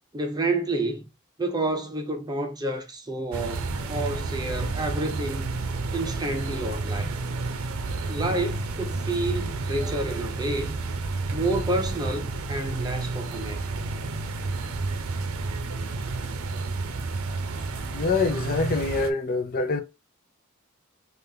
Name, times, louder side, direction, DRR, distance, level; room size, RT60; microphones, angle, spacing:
voice 1, 0.1-1.1 1.4-5.5 5.9-7.2 8.1-10.8 11.3-13.6, right 2 dB, 20° right, 0.6 m, -29 dB
sound 1, 3.3-19.1, right 3 dB, 90° right, 0.6 m, -31 dB
voice 2, 17.9-19.8, left 3 dB, 45° left, 0.6 m, -25 dB
3.5 x 2.4 x 2.7 m
head